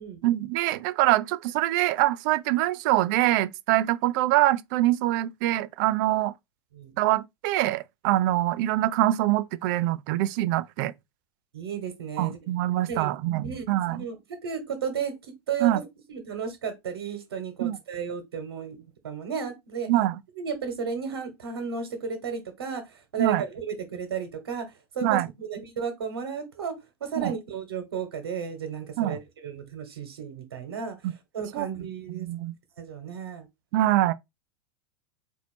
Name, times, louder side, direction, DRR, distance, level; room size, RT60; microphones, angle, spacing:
voice 1, 0.2-6.3 7.0-10.9 12.2-14.0 15.6-15.8 17.6-17.8 19.9-20.2 23.2-23.4 25.0-25.3 27.2-27.3 29.0-29.2 31.0-31.1 31.5-31.7 32.2-32.5 33.7-34.1, right 15 dB, 50° right, 0.5 m, -24 dB
voice 2, 11.5-12.4 12.9-13.1 13.4-19.9 20.4-26.7 27.0-32.3 32.8-33.5, right 6 dB, 75° right, 1.4 m, -34 dB
4.1 x 2.7 x 4.3 m
hypercardioid pair, 95°, 13 cm